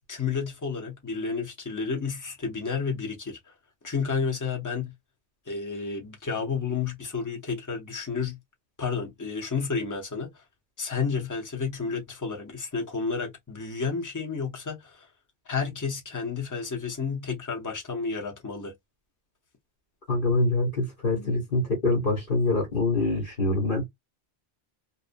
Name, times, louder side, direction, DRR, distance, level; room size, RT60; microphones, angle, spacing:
voice 1, 0.1-3.5 3.8-4.9 5.5-8.4 8.8-10.4 10.8-15.1 15.5-18.7, left 5 dB, 20° left, 0.6 m, -31 dB
voice 2, 20.1-23.9, left 2 dB, 55° left, 1.3 m, -25 dB
2.5 x 2.1 x 2.5 m
omnidirectional pair, 1.1 m